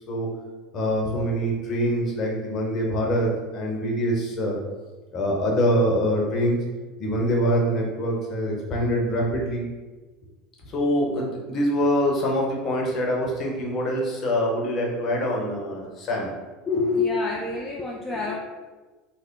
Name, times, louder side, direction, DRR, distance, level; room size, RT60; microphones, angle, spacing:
voice 1, 0.7-4.6 5.1-6.6 7.0-9.6 10.6-16.3, equal, 40° left, -2 dB, 1.0 m, -24 dB
voice 2, 16.7-18.3, left 4 dB, 20° left, -3 dB, 0.5 m, -26 dB
3.5 x 2.1 x 3.7 m, 1.3 s
hypercardioid pair, 75°, 0 cm